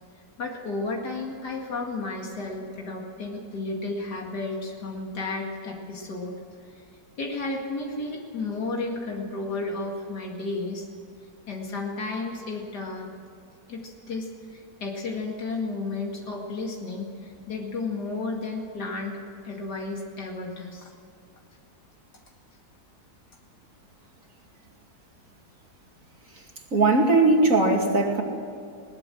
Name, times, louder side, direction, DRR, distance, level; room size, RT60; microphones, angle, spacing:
voice 1, 0.4-6.4 6.7-6.8 7.2-10.9 11.5-13.1 13.7-19.2 19.4-20.9, left 3 dB, 85° left, 0 dB, 2.8 m, -33 dB
voice 2, 26.7-28.2, right 2 dB, 55° right, 1 dB, 2.9 m, -19 dB
20.5 x 19.0 x 7.7 m, 2.5 s
omnidirectional pair, 1.7 m